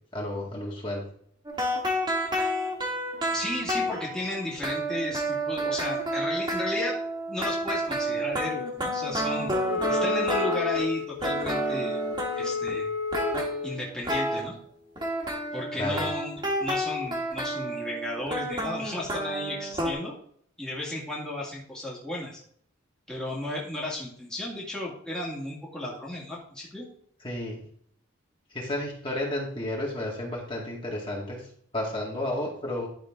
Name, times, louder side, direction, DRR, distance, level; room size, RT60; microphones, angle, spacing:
voice 1, 0.1-1.0 15.7-16.1 27.2-27.6 28.5-32.9, left 1 dB, 25° left, -3 dB, 2.1 m, -32 dB
sound 1, 1.4-10.9 11.2-12.7 13.1-14.4 15.0-19.9, right 1 dB, 20° right, 2.0 m, -30 dB
voice 2, 3.3-7.0 7.3-9.5 9.9-12.0 12.4-12.9 13.6-14.6 15.5-20.2 20.6-22.4 23.1-26.9, left 1 dB, 5° left, -6 dB, 2.1 m, -34 dB
Wind instrument woodwind instrument, 9.7-13.8, left 5 dB, 75° left, 0.7 m, -31 dB
11.5 x 6.4 x 3.7 m, 0.63 s
head